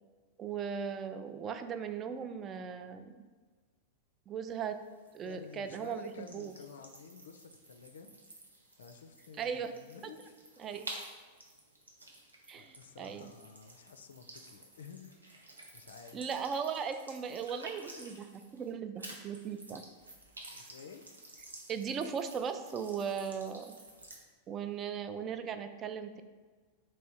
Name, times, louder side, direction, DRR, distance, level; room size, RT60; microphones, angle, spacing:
voice 1, 0.4-3.1 4.3-4.8 5.1-6.5 9.4-9.7 10.6-10.9 12.5-13.3 16.1-19.8 21.7-23.7 24.5-26.2, right 7 dB, 30° right, 9 dB, 0.3 m, -38 dB
sound 1, 4.5-18.7 19.0-24.2, right 2 dB, 75° right, 0.7 m, -52 dB
voice 2, 5.3-8.1 8.8-10.4 12.5-15.4 15.7-16.2 20.5-21.0, left 6 dB, 65° left, 7 dB, 0.3 m, -52 dB
3.4 x 3.1 x 4.3 m, 1.4 s
figure-of-eight pair, 90°, 0 cm